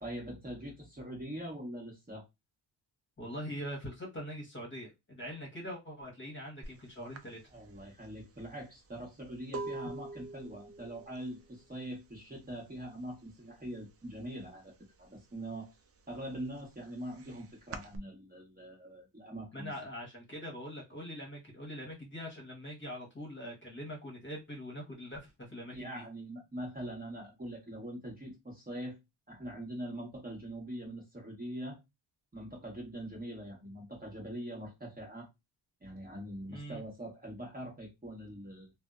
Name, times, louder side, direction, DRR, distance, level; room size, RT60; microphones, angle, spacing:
voice 1, 0.0-2.2 7.5-14.7 15.0-15.7 16.1-19.7 25.7-29.0 29.3-31.8 32.3-35.3 35.8-38.7, right 1 dB, 20° right, 1.1 m, -43 dB
voice 2, 3.2-7.4 19.5-26.0 36.5-36.8, equal, 25° left, 1.1 m, -43 dB
sound 1, 6.6-6.8 7.1-12.8 13.1-13.6 13.9-15.0 15.4-18.0, right 3 dB, 35° right, 0.4 m, -45 dB
2.6 x 2.1 x 2.3 m
cardioid pair, 100°, 48 cm